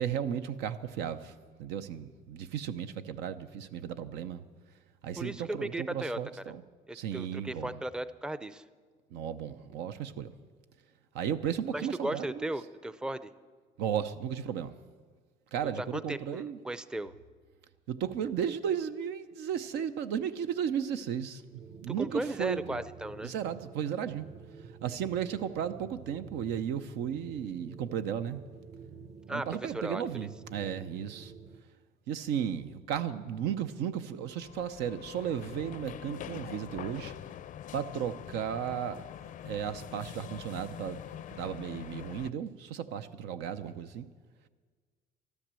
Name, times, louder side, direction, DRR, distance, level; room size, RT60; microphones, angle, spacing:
voice 1, 0.0-4.4 5.0-6.6 6.9-7.8 9.1-10.3 11.1-12.5 13.8-14.8 15.5-16.6 17.9-22.8 23.2-24.3 24.6-28.4 29.3-31.3 32.1-37.1 37.7-39.1 39.4-41.0 41.3-44.1, right 8 dB, 90° right, 0.7 m, -35 dB
voice 2, 5.2-6.2 6.9-8.6 11.7-13.3 15.6-17.1 22.0-23.3 29.3-30.0, right 1 dB, 5° right, 0.4 m, -36 dB
sound 1, 21.4-31.7, right 5 dB, 45° right, 0.9 m, -50 dB
sound 2, 34.3-42.3, left 10 dB, 50° left, 0.5 m, -44 dB
13.0 x 12.5 x 7.6 m
cardioid pair, 110°, 17 cm